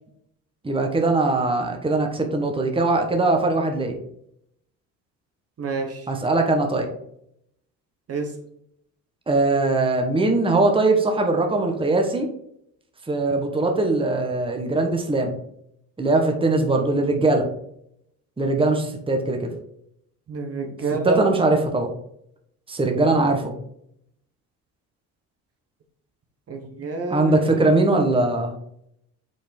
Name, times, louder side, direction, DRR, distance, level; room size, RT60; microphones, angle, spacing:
voice 1, 0.6-4.0 6.1-6.9 9.3-12.3 13.1-15.3 16.0-17.5 18.4-19.5 21.0-21.9 22.7-23.5 27.1-28.5, right 2 dB, 15° right, 3 dB, 1.3 m, -21 dB
voice 2, 5.6-6.1 8.1-8.3 20.3-21.2 26.5-27.7, right 3 dB, 40° right, 4 dB, 1.3 m, -28 dB
5.2 x 4.2 x 5.4 m, 0.73 s
supercardioid pair, 85°, 36 cm